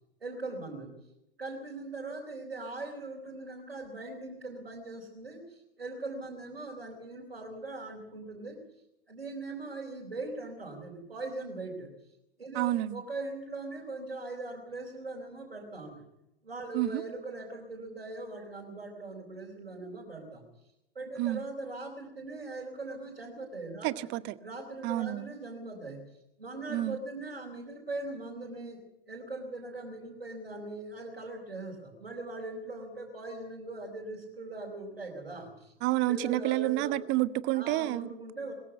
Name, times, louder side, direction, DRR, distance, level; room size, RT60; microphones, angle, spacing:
voice 1, 0.2-0.9 1.4-8.6 9.1-11.9 12.4-16.0 16.4-20.4 20.9-23.9 24.4-26.0 26.4-28.8 29.1-35.7 36.1-37.0 37.5-38.5, right 2 dB, 80° right, 4.4 m, -40 dB
voice 2, 12.5-13.0 16.7-17.0 21.2-21.4 23.8-24.4 24.8-25.3 26.7-27.0 35.8-38.1, right 16 dB, 40° right, 0.9 m, -29 dB
22.0 x 14.5 x 8.1 m
figure-of-eight pair, 90°, 29 cm